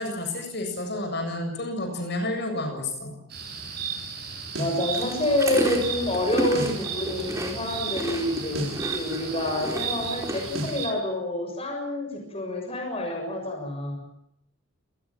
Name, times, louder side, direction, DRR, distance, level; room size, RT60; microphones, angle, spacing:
voice 1, 0.0-3.2, left 2 dB, 55° left, 5 dB, 7.6 m, -30 dB
sound 1, 3.3-10.9, right 6 dB, 50° right, 7.5 m, -35 dB
sound 2, 4.5-4.8 6.5-6.8 8.5-8.8 10.5-10.8, equal, 80° right, 6.8 m, -32 dB
voice 2, 4.6-14.0, left 1 dB, 30° left, 2 dB, 6.8 m, -28 dB
sound 3, 4.9-10.7, right 1 dB, 15° right, 4.7 m, -32 dB
28.0 x 20.0 x 7.6 m, 0.77 s
head